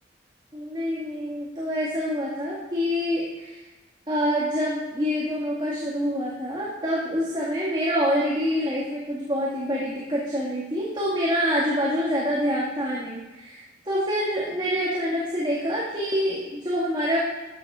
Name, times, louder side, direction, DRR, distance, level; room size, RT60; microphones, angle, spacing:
voice 1, 0.5-3.6 4.1-17.2, equal, 25° right, -6 dB, 2.2 m, -26 dB
13.0 x 7.5 x 5.0 m, 1.1 s
head